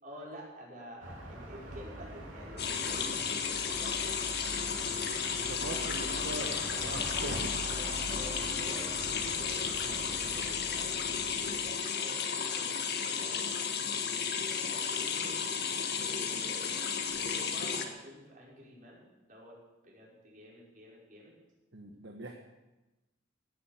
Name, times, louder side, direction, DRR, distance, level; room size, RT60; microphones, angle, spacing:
voice 1, 0.0-5.1 5.6-6.6 7.7-11.0 11.5-14.0 14.7-16.8 17.1-19.6 19.8-21.4, equal, 40° right, -4 dB, 5.6 m, -50 dB
sound 1, 1.0-11.7, right 1 dB, 85° right, 3.3 m, -43 dB
sound 2, 2.6-17.9, left 6 dB, 55° left, 1.7 m, -33 dB
voice 2, 5.3-7.6 21.7-22.3, right 2 dB, 60° right, 3 dB, 1.4 m, -42 dB
17.0 x 10.0 x 7.6 m, 1.1 s
head